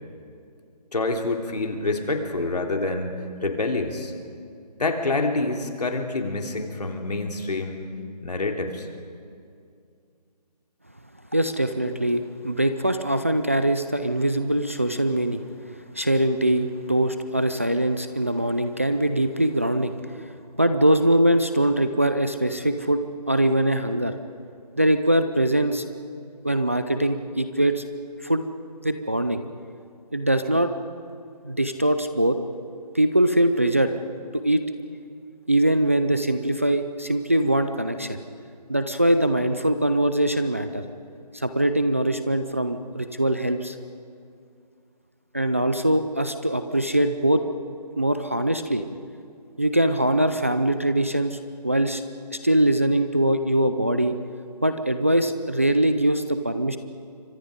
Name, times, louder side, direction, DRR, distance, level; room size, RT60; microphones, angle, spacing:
voice 1, 0.9-3.1 3.4-4.1 4.8-7.8 8.2-8.9, left 2 dB, 70° left, 3 dB, 3.3 m, -27 dB
voice 2, 11.3-15.4 15.9-20.3 20.6-24.1 24.8-25.8 26.4-27.8 28.2-28.4 28.8-29.4 30.1-30.7 31.4-32.4 32.9-33.9 34.4-34.6 35.5-38.2 38.7-40.8 41.3-43.8 45.3-47.4 48.0-48.8 49.6-51.4 51.6-52.0 52.3-54.1 54.6-56.8, right 1 dB, 20° right, 9 dB, 0.5 m, -22 dB
27.5 x 25.0 x 5.1 m, 2.3 s
figure-of-eight pair, 170°, 21 cm